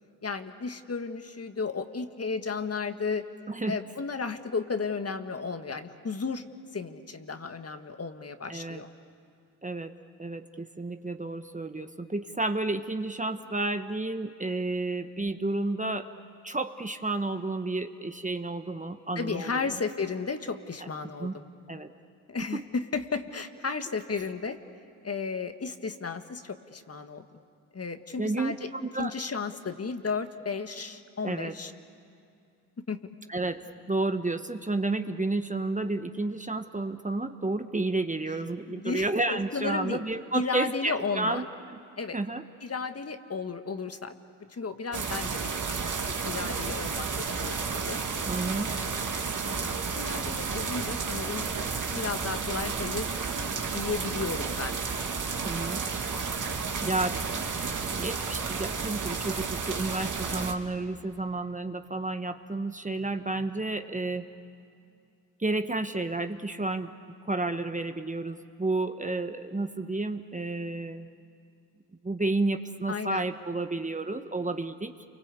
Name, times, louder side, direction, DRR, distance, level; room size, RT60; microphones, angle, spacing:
voice 1, 0.2-3.2 3.7-6.5 6.7-8.9 19.1-21.4 22.3-24.6 25.0-27.2 27.7-28.6 29.0-31.7 32.9-33.0 38.7-40.0 40.3-41.5 42.0-42.2 42.6-44.1 44.4-48.0 48.7-49.0 49.4-51.5 51.9-54.8 72.9-73.3, left 4 dB, 35° left, 8 dB, 1.7 m, -34 dB
voice 2, 8.5-8.8 9.6-9.9 10.2-16.1 16.4-19.8 21.2-21.4 21.7-21.9 22.5-22.6 28.2-29.2 31.2-31.5 33.3-33.6 33.9-41.4 42.1-42.4 48.3-48.7 55.4-55.8 56.8-64.3 65.4-66.9 67.2-71.1 72.0-74.9, right 2 dB, 15° right, 8 dB, 1.3 m, -31 dB
sound 1, 44.9-60.5, right 5 dB, 45° right, 2.5 m, -32 dB
29.5 x 24.0 x 8.4 m, 2.4 s
supercardioid pair, 50°, 44 cm